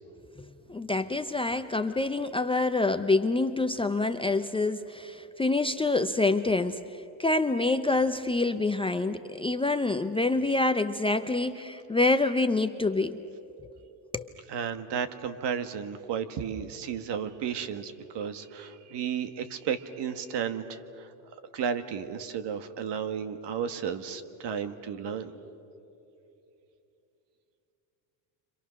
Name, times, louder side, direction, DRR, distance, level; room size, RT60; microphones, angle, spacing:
voice 1, 0.4-13.2 13.6-13.7 14.1-14.3, left 2 dB, 10° left, 8 dB, 0.6 m, -27 dB
voice 2, 14.5-21.1 21.5-25.3, right 7 dB, 55° right, 10 dB, 1.7 m, -33 dB
29.5 x 26.0 x 6.4 m, 2.9 s
supercardioid pair, 105°, 50 cm